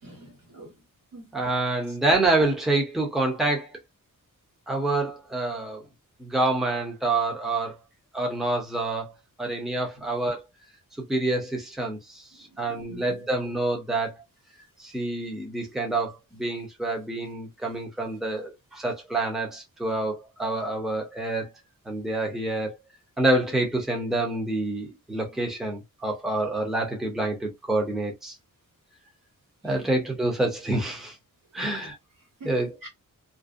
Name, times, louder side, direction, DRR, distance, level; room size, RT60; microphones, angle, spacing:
voice 1, 0.0-0.7 1.1-1.3 2.1-2.2 12.7-13.2 29.6-29.9 31.6-31.8 32.4-32.5 32.8-32.9, right 1 dB, 85° right, 1.3 m, -44 dB
voice 2, 1.3-3.7 4.7-5.8 6.2-7.7 8.1-9.1 9.4-10.4 11.0-12.3 12.6-14.1 14.8-21.5 21.9-22.8 23.2-28.3 29.6-31.1 31.5-32.0 32.4-32.8, right 2 dB, ahead, 0.6 m, -27 dB
2.5 x 2.1 x 2.4 m
wide cardioid pair, 170°, 33 cm